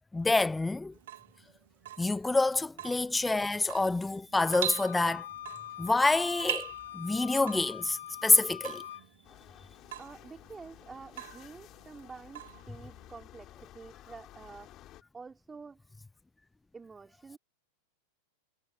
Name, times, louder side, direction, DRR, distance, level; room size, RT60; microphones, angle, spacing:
voice 1, 0.1-0.9 2.0-5.3 5.8-6.7 6.9-8.8, left 3 dB, 10° left, 0.5 m, -27 dB
Water tap faucet / Drip, 0.9-13.1, right 13 dB, 55° right, 2.4 m, -43 dB
Wind instrument woodwind instrument, 4.3-9.0, left 12 dB, 60° left, 0.9 m, -43 dB
sound 1, 9.2-15.0, left 14 dB, 35° left, 6.1 m, -54 dB
voice 2, 10.0-14.7 15.1-15.9 16.7-17.4, right 4 dB, 15° right, 3.0 m, -49 dB
figure-of-eight pair, 90°, 0 cm